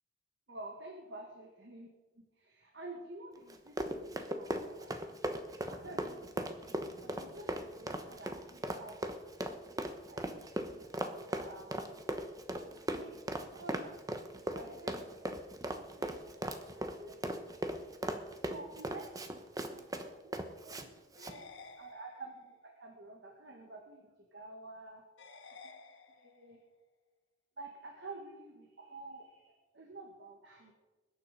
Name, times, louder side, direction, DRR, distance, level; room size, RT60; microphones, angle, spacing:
voice 1, 0.5-1.9 2.2-5.0 5.7-9.1 9.4-12.0 12.6-13.9 14.5-15.3 15.7-17.8 18.4-19.4 19.7-19.8 20.2-20.3 20.6-20.9 21.2-21.4 21.8-24.0 24.3-25.0 25.6-25.7 26.1-26.6 27.6-30.7, right 2 dB, 65° right, 2 dB, 2.0 m, -50 dB
Run, 3.5-20.9 21.1-21.4, right 1 dB, 20° right, 1.1 m, -38 dB
sound 1, 21.2-22.6 25.2-26.6, left 4 dB, 85° left, 1.4 m, -53 dB
21.5 x 9.9 x 5.3 m, 1.2 s
head